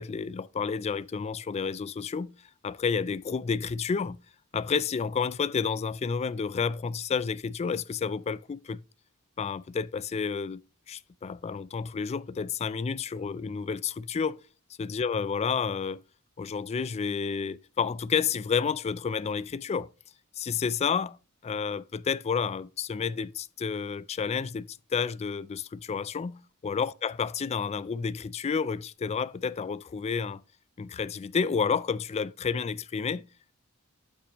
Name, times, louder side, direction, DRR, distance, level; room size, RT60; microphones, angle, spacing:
voice 1, 0.0-2.4 2.6-4.2 4.5-8.8 9.4-10.6 10.9-14.4 14.8-16.0 16.4-19.9 20.4-21.2 21.4-30.4 30.8-33.3, left 6 dB, 30° left, 0.3 m, -30 dB
8.1 x 5.9 x 2.9 m
head